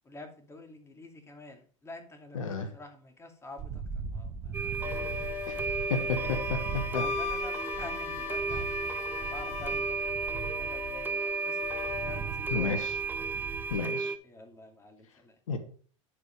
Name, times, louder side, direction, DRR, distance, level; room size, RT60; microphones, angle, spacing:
voice 1, 0.0-5.2 5.9-6.4 7.0-12.7 14.0-15.4, left 2 dB, 15° left, 5 dB, 2.4 m, -49 dB
voice 2, 2.3-2.7 5.5-7.0 12.5-13.0 13.7-14.1 15.5-15.6, left 5 dB, 80° left, 8 dB, 1.4 m, -32 dB
sound 1, 3.6-13.8, right 6 dB, 40° right, 1.5 m, -40 dB
sound 2, 4.5-14.2, right 5 dB, 10° right, 0.7 m, -34 dB
Wind instrument woodwind instrument, 4.8-12.2, left 13 dB, 45° left, 0.6 m, -39 dB
11.0 x 4.9 x 5.2 m, 0.43 s
hypercardioid pair, 90°, 17 cm